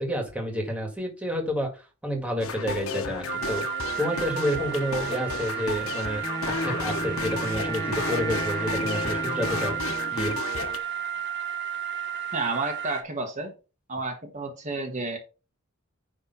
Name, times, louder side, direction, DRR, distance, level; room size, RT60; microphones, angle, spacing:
voice 1, 0.0-1.7 2.0-3.7 4.0-9.8 10.1-10.4, equal, 5° right, 1.9 m, -29 dB
sound 1, 2.4-10.8, left 4 dB, 85° left, 1.2 m, -33 dB
sound 2, 3.3-13.0, right 8 dB, 55° right, 1.5 m, -33 dB
Wind instrument woodwind instrument, 6.2-10.2, right 1 dB, 15° left, 1.1 m, -35 dB
voice 2, 12.3-13.5 13.9-15.2, right 3 dB, 35° right, 1.4 m, -31 dB
10.0 x 3.4 x 5.5 m
head